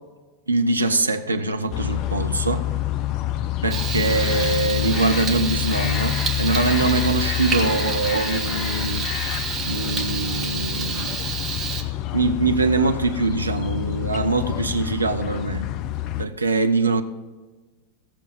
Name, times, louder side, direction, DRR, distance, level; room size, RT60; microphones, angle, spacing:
voice 1, 0.5-2.6 3.6-9.1 9.7-11.2 12.1-15.6 16.2-17.0, right 3 dB, 80° right, 7 dB, 0.7 m, -23 dB
sound 1, 1.7-16.3, left 13 dB, 40° left, 0.5 m, -27 dB
Frying (food), 3.7-11.8, right 5 dB, 25° right, 1.4 m, -29 dB
16.5 x 6.8 x 5.0 m, 1.3 s
figure-of-eight pair, 90°, 0 cm